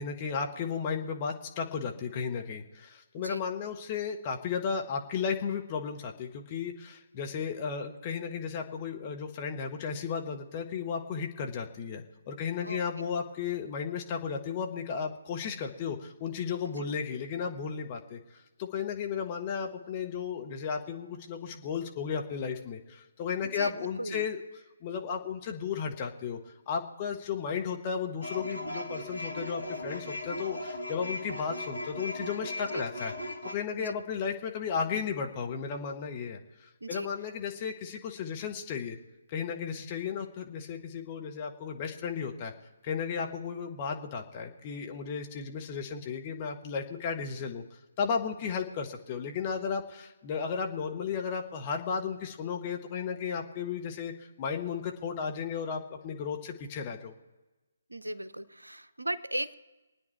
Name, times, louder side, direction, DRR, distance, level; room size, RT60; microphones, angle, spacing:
voice 1, 0.0-24.4 24.8-26.4 26.7-33.1 33.4-39.0 39.3-42.5 42.8-57.1, left 6 dB, 25° left, 2 dB, 1.5 m, -34 dB
voice 2, 12.6-13.1 16.8-17.0 23.4-24.3 32.7-32.8 33.8-34.0 36.8-37.1 57.9-59.6, right 1 dB, 80° right, 15 dB, 0.7 m, -37 dB
sound 1, 28.2-33.6, left 1 dB, 85° left, 1.6 m, -37 dB
24.0 x 9.4 x 4.7 m, 1.1 s
figure-of-eight pair, 140°, 0 cm